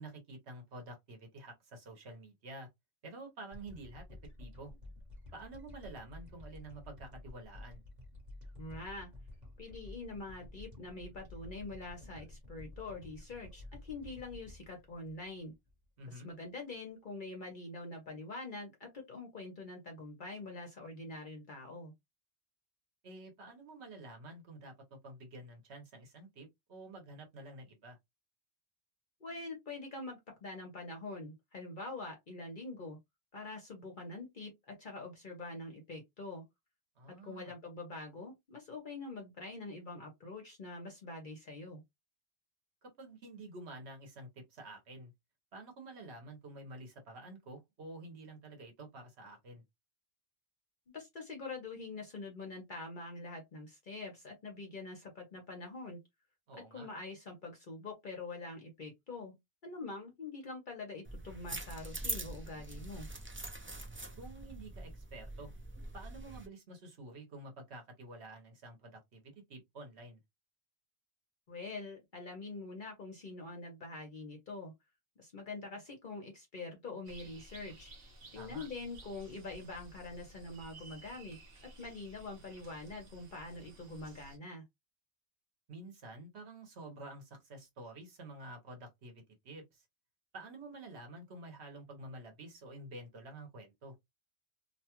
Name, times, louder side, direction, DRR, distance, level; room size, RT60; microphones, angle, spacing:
voice 1, 0.0-2.7 3.0-4.0 4.4-4.7 5.3-7.8 16.0-16.3 23.0-28.0 37.0-37.5 42.8-45.1 45.5-49.6 56.5-56.9 64.2-65.5 65.9-70.2 78.3-78.7 85.7-89.8 90.3-93.9, right 2 dB, 90° right, 1.3 m, -49 dB
sound 1, 3.5-16.0, left 2 dB, 45° right, 1.3 m, -51 dB
voice 2, 8.6-9.1 9.6-15.5 16.1-21.9 29.2-33.0 33.3-36.4 37.1-41.8 50.9-56.0 56.6-59.4 59.6-63.1 71.5-74.7 75.2-77.9 78.3-81.4 81.8-84.6, left 3 dB, 55° left, 0.9 m, -45 dB
sound 2, 61.1-66.5, right 2 dB, 20° right, 0.3 m, -43 dB
sound 3, 77.0-84.4, right 1 dB, 65° right, 1.1 m, -55 dB
2.8 x 2.2 x 2.9 m
omnidirectional pair, 1.1 m